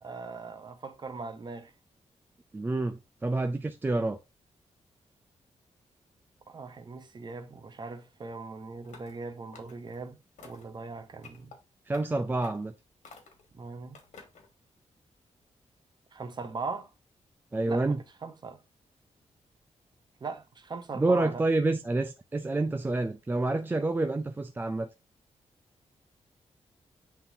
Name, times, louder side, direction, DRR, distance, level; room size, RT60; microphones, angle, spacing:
voice 1, 0.0-1.7 6.5-10.2 10.4-11.5 13.5-14.0 16.1-16.9 17.7-18.6 20.2-21.4, right 4 dB, 35° right, 0.9 m, -40 dB
voice 2, 2.5-4.2 11.9-12.7 17.5-18.0 20.9-24.9, right 2 dB, 15° right, 0.4 m, -28 dB
sound 1, 8.8-9.2 9.5-10.0 10.4-10.8 11.2-11.6 11.9-12.1 12.4-12.7 13.0-13.5 13.9-14.5, left 4 dB, 80° left, 2.1 m, -51 dB
9.4 x 3.8 x 2.7 m
wide cardioid pair, 145°, 12 cm